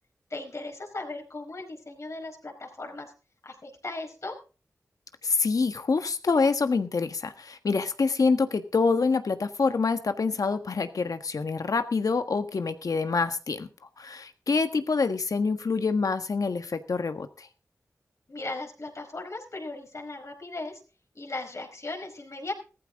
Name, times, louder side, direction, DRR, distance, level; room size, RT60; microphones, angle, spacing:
voice 1, 0.3-3.1 3.4-4.3 18.3-20.8 21.1-22.5, left 2 dB, 55° left, 2 dB, 4.9 m, -37 dB
voice 2, 5.2-13.7 14.0-17.5, left 4 dB, 75° left, 9 dB, 1.4 m, -26 dB
15.5 x 14.0 x 3.6 m, 0.34 s
cardioid pair, 45°, 6 cm